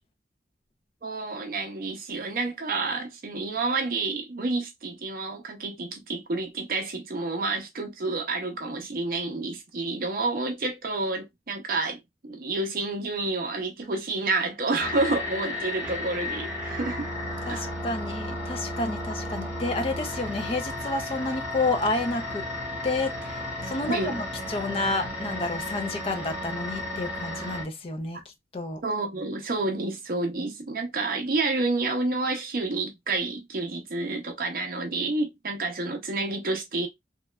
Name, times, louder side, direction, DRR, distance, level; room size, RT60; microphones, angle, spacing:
voice 1, 1.0-17.1 17.5-17.7 23.9-24.2 28.8-36.9, right 3 dB, 50° right, 0.6 m, -29 dB
sound 1, 14.8-27.6, left 1 dB, 10° right, 1.0 m, -33 dB
voice 2, 17.5-22.5 22.8-28.2 28.5-28.8, left 2 dB, 35° left, 0.4 m, -30 dB
3.0 x 2.3 x 2.2 m
head